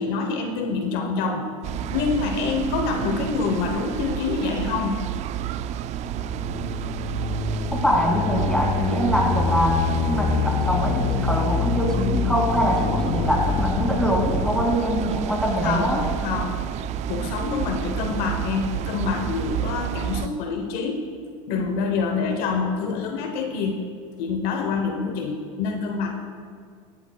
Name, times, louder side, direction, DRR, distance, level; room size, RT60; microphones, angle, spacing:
voice 1, 0.0-1.5 1.9-5.0 15.6-16.8 17.1-21.0 21.5-23.8 24.2-26.1, left 4 dB, 60° left, 5 dB, 1.0 m, -26 dB
sound 1, 1.6-20.3, right 10 dB, 40° right, 0.4 m, -30 dB
sound 2, 6.0-14.8, left 8 dB, 40° left, 0.5 m, -27 dB
voice 2, 7.8-16.0, equal, 5° left, -1 dB, 2.7 m, -23 dB
15.5 x 11.5 x 2.3 m, 2.1 s
supercardioid pair, 105°, 18 cm